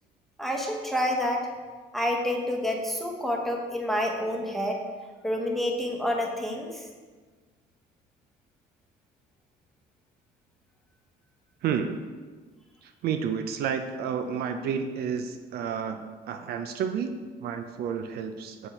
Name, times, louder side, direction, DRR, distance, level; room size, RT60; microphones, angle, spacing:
voice 1, 0.4-1.5 1.9-4.8 5.2-6.8, left 1 dB, ahead, 0 dB, 1.0 m, -28 dB
voice 2, 11.6-12.1 12.8-18.7, right 7 dB, 70° right, 7 dB, 0.5 m, -31 dB
6.8 x 4.3 x 4.3 m, 1.4 s
cardioid pair, 110°, 17 cm